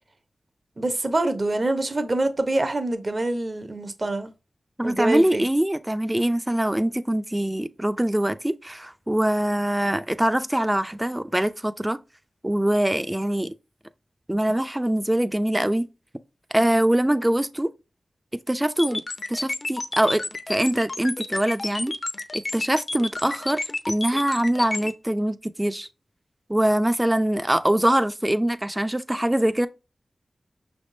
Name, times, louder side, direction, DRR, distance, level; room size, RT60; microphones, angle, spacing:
voice 1, 0.8-4.3 4.8-5.4, right 2 dB, 45° right, 0.8 m, -25 dB
voice 2, 4.8-12.0 12.4-13.5 14.3-15.9 16.5-17.7 18.5-19.0 19.3-21.9 22.3-25.9 26.5-29.7, right 1 dB, 15° right, 0.5 m, -23 dB
sound 1, 18.8-24.9, left 2 dB, 50° left, 0.6 m, -30 dB
5.7 x 3.5 x 2.6 m
cardioid pair, 50°, 0 cm